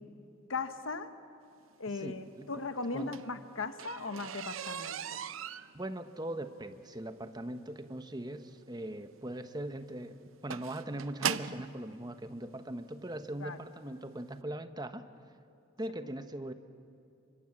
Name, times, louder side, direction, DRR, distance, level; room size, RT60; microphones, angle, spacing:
voice 1, 0.5-1.1 1.8-5.2 13.4-13.6, left 3 dB, 85° left, 9 dB, 1.2 m, -38 dB
voice 2, 1.9-2.6 2.9-3.1 5.7-15.1 15.8-16.5, right 1 dB, 20° right, 9 dB, 1.1 m, -40 dB
sound 1, 2.8-11.7 12.6-12.7 13.3-13.5 13.8-13.9 14.2-14.3, right 8 dB, 85° right, 0.7 m, -40 dB
29.5 x 25.0 x 7.5 m, 2.7 s
head